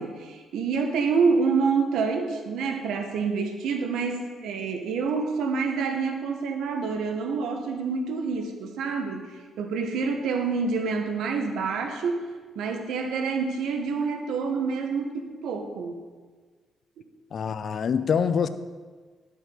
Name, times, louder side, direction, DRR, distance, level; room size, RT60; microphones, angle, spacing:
voice 1, 0.0-12.2 12.5-16.0 17.0-17.1, right 5 dB, 80° right, 1.2 m, -27 dB
voice 2, 17.3-18.5, left 7 dB, 55° left, 0.5 m, -25 dB
11.5 x 6.9 x 4.5 m
cardioid pair, 90°, 0 cm